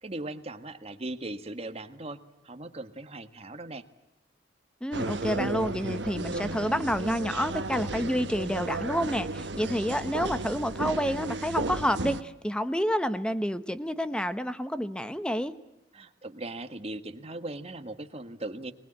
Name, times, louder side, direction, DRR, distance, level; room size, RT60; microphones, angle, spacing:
voice 1, 0.0-3.8 15.9-18.7, right 2 dB, 35° right, 8 dB, 1.5 m, -39 dB
voice 2, 4.8-15.6, equal, 5° left, 12 dB, 1.0 m, -29 dB
sound 1, 4.9-12.2, right 2 dB, 75° right, 1.2 m, -34 dB
25.0 x 20.5 x 8.8 m, 0.91 s
head